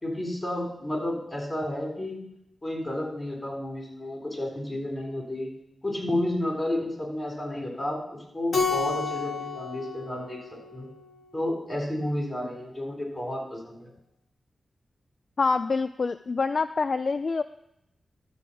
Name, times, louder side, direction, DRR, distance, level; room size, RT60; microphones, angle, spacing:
voice 1, 0.0-2.2 2.6-5.5 5.8-10.4 10.7-10.9 11.3-13.9, left 1 dB, 25° left, 0 dB, 3.6 m, -31 dB
Keyboard (musical), 8.5-11.2, left 4 dB, 80° left, 1.6 m, -31 dB
voice 2, 15.4-17.4, left 4 dB, 50° left, 11 dB, 0.3 m, -26 dB
12.5 x 4.9 x 6.8 m, 0.80 s
wide cardioid pair, 95°, 0 cm